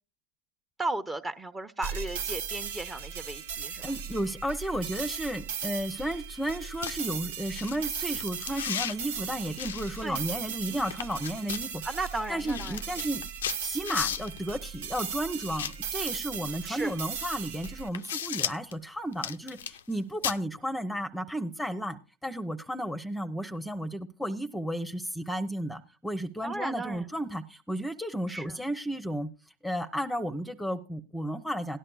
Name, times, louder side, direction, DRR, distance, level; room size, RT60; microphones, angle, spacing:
voice 1, 0.8-3.8 10.0-10.2 10.7-10.9 11.8-12.8 16.7-17.0 26.4-27.1 28.3-28.6, right 2 dB, 20° right, 9 dB, 0.9 m, -35 dB
sound 1, 1.8-17.9, right 7 dB, 80° right, 0.7 m, -37 dB
voice 2, 3.8-11.8 12.3-13.3 13.6-29.3 29.6-31.8, equal, 5° left, 9 dB, 0.8 m, -33 dB
sound 2, 6.5-6.6 6.8-7.0 7.5-7.8 8.1-9.0 9.6-10.5 10.9-11.7 12.1-12.2 12.4-14.4 15.4-16.4 17.2-17.3 17.6-18.7 19.1-19.9 20.2-20.4, left 9 dB, 85° left, 0.5 m, -35 dB
17.5 x 11.0 x 2.3 m, 0.31 s
hypercardioid pair, 95°, 0 cm